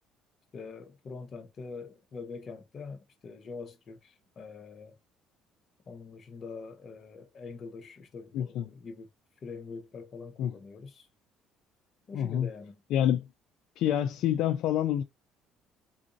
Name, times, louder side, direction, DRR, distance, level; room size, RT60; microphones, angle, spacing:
voice 1, 0.5-5.0 5.9-9.1 9.4-11.1 12.1-12.8, left 4 dB, 45° left, 0.8 m, -44 dB
voice 2, 8.3-8.7 10.4-10.5 12.1-12.5 12.9-13.3 13.8-15.0, left 11 dB, 70° left, 0.3 m, -27 dB
3.8 x 2.5 x 2.5 m
cardioid pair, 100°, 0 cm